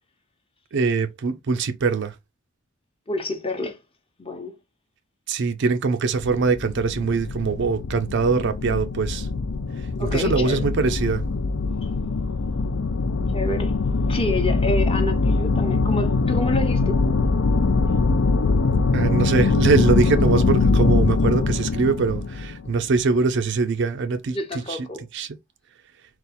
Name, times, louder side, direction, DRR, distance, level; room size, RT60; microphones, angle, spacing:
voice 1, 0.7-2.2 5.3-9.3 9.8-11.2 18.9-24.9 25.1-25.4, right 4 dB, 55° right, 0.4 m, -23 dB
voice 2, 3.1-3.8 4.2-4.5 10.0-10.6 11.8-11.9 13.3-13.8 14.1-17.0 24.3-25.0, left 2 dB, 25° left, 0.8 m, -28 dB
sound 1, 6.1-23.2, left 3 dB, 65° left, 0.5 m, -22 dB
4.0 x 2.4 x 4.0 m
head